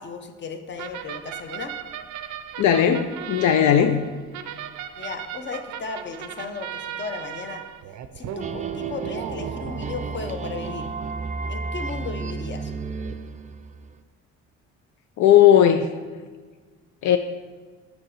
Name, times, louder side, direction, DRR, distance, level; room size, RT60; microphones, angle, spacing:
voice 1, 0.0-1.7 5.0-7.6 8.1-10.9 11.5-12.7, left 4 dB, 40° left, 7 dB, 0.8 m, -35 dB
sound 1, 0.8-11.1, right 9 dB, 75° right, 0.5 m, -37 dB
voice 2, 2.6-4.0 15.2-15.9 17.0-17.2, left 10 dB, 70° left, 7 dB, 0.5 m, -17 dB
sound 2, 8.4-14.0, right 4 dB, 25° right, 0.4 m, -32 dB
7.4 x 5.0 x 4.6 m, 1.4 s
cardioid pair, 90°, 30 cm